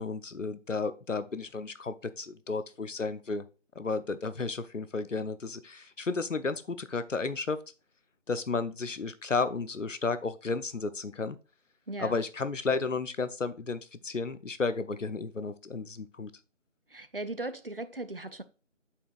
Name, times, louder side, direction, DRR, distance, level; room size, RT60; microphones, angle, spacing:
voice 1, 0.0-3.4 3.8-7.6 8.3-11.4 12.0-16.3, left 4 dB, 75° left, 0.8 m, -33 dB
voice 2, 11.9-12.2 16.9-18.4, right 2 dB, 50° right, 0.5 m, -38 dB
8.8 x 4.7 x 2.4 m
figure-of-eight pair, 170°, 38 cm